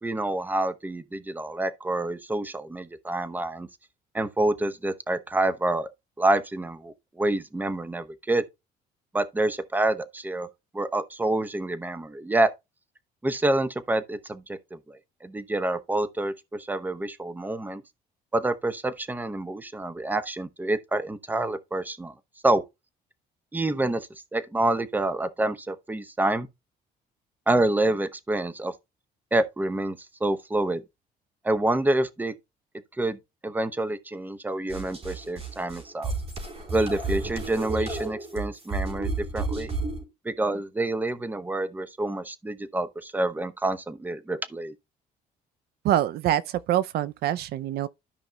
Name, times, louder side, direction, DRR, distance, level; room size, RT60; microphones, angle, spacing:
voice 1, 0.0-3.7 4.1-5.9 6.2-8.4 9.1-10.5 10.7-12.5 13.2-17.8 18.3-22.1 22.4-22.6 23.5-26.5 27.5-28.7 29.3-30.8 31.4-32.3 33.0-33.2 33.4-36.1 36.7-39.7 40.2-44.7, right 2 dB, 10° right, 0.8 m, -27 dB
sound 1, 34.7-40.0, right 3 dB, 35° right, 4.0 m, -32 dB
voice 2, 45.8-47.9, right 12 dB, 70° right, 0.5 m, -25 dB
13.0 x 5.2 x 2.3 m
cardioid pair, 110°, 17 cm